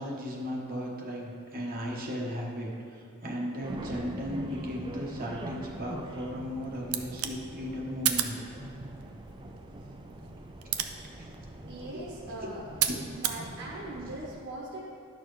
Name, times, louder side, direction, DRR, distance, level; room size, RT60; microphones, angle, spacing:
voice 1, 0.0-8.4 11.2-11.3 11.9-12.0 12.9-13.0, equal, 45° right, -2 dB, 1.0 m, -36 dB
sound 1, 3.6-14.3, right 1 dB, 20° right, 0.4 m, -43 dB
sound 2, 6.3-13.4, right 10 dB, 85° right, 0.5 m, -35 dB
voice 2, 11.6-12.6 13.1-14.9, right 2 dB, 60° right, -4 dB, 1.2 m, -41 dB
11.0 x 6.6 x 3.2 m, 2.5 s
head